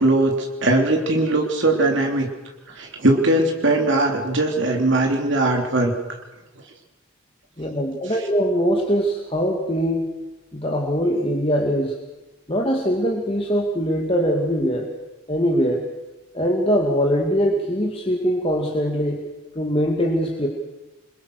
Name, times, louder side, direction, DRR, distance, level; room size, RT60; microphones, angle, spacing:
voice 1, 0.0-2.3 2.7-6.2, right 2 dB, 55° right, 2 dB, 3.1 m, -20 dB
voice 2, 7.6-10.1 10.5-11.9 12.5-14.9 15.3-15.8 16.3-19.2 19.6-20.5, equal, 25° left, 1 dB, 2.3 m, -22 dB
28.5 x 22.0 x 6.5 m, 1.1 s
head